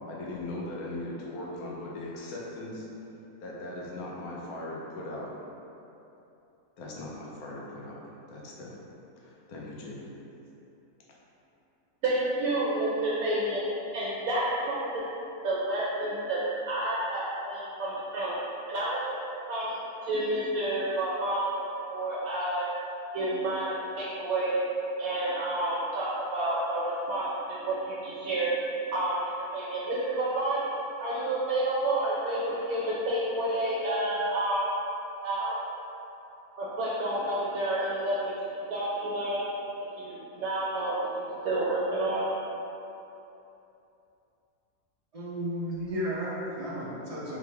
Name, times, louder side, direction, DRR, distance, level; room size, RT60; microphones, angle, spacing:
voice 1, 0.0-2.9 3.4-5.3 6.8-8.0 8.3-8.9 9.2-10.1, left 1 dB, 80° left, -4 dB, 1.2 m, -39 dB
voice 2, 12.0-13.6 13.9-15.0 15.4-16.4 16.7-18.3 18.7-19.2 19.5-19.7 20.1-22.7 23.1-24.6 25.0-28.5 28.9-30.6 31.0-34.7 35.2-35.6 36.6-38.3 38.7-39.4 39.9-42.2, right 1 dB, 75° right, -8 dB, 1.0 m, -29 dB
voice 3, 45.1-47.4, equal, 40° right, -8 dB, 0.5 m, -33 dB
3.6 x 3.3 x 3.2 m, 2.9 s
omnidirectional pair, 1.5 m